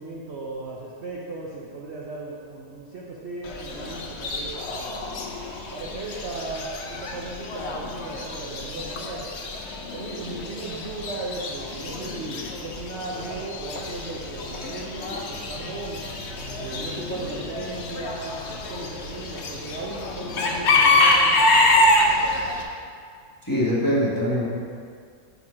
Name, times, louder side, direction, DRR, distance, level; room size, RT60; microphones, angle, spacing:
voice 1, 0.0-5.0 5.7-9.3 9.9-16.0 16.6-21.4, right 3 dB, 70° right, -4 dB, 0.6 m, -36 dB
Chicken rooster / Bird, 3.4-22.6, left 2 dB, 75° left, 0.6 m, -26 dB
voice 2, 23.4-24.4, equal, 15° left, -8 dB, 1.0 m, -23 dB
6.7 x 4.4 x 4.8 m, 2.2 s
omnidirectional pair, 2.0 m